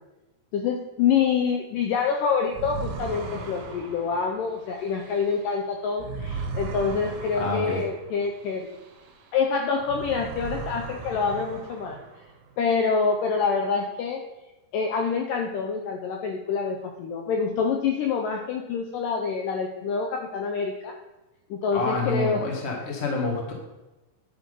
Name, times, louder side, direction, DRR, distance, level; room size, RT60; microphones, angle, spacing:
voice 1, 0.5-8.7 9.3-12.0 12.6-14.2 14.7-21.0 21.5-22.5, left 5 dB, 80° left, 3 dB, 1.9 m, -26 dB
sound 1, 2.5-9.4 9.7-12.4, right 4 dB, 70° right, 2.9 m, -38 dB
voice 2, 7.3-7.8 21.7-23.5, left 3 dB, 65° left, -1 dB, 0.6 m, -28 dB
10.5 x 6.3 x 5.3 m, 1.1 s
omnidirectional pair, 4.7 m